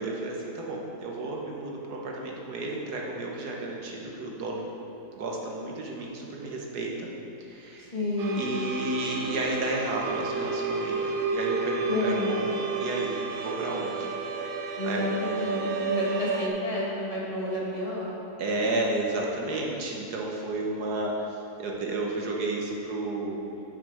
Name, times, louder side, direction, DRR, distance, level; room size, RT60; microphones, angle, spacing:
voice 1, 0.0-4.7 5.2-7.1 7.4-7.9 8.3-11.0 11.3-14.1 14.5-15.8 18.4-23.4, right 2 dB, 85° right, -1 dB, 1.7 m, -32 dB
voice 2, 7.9-8.5 11.9-12.4 14.8-18.1, left 1 dB, 25° left, -7 dB, 1.5 m, -30 dB
sound 1, 8.2-16.5, right 4 dB, 70° right, 1.1 m, -31 dB
9.0 x 6.0 x 4.9 m, 2.9 s
omnidirectional pair, 1.7 m